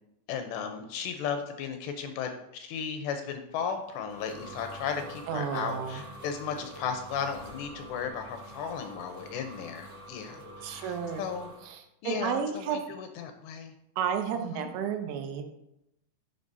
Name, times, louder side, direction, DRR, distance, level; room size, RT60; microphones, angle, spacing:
voice 1, 0.3-11.5 12.0-13.7 14.5-14.7, left 7 dB, 80° left, 5 dB, 2.7 m, -35 dB
sound 1, 3.6-11.6, right 1 dB, 60° right, 0.7 m, -46 dB
voice 2, 5.3-6.0 10.6-11.2 11.7-12.8 14.0-15.4, right 7 dB, 80° right, 6 dB, 3.1 m, -32 dB
11.5 x 9.3 x 2.7 m, 0.84 s
omnidirectional pair, 5.4 m